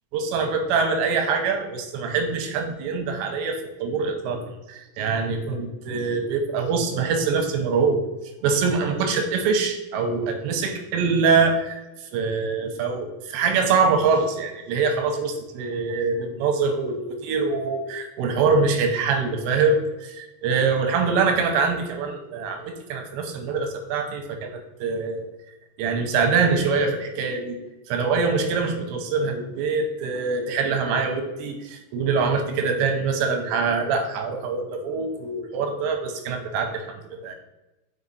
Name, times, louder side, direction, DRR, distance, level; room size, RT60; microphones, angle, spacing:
voice 1, 0.1-4.4 4.7-8.0 8.4-25.3 25.8-27.6 27.9-37.3, right 4 dB, 85° right, 5 dB, 3.2 m, -24 dB
7.2 x 5.2 x 4.1 m, 0.97 s
omnidirectional pair, 5.0 m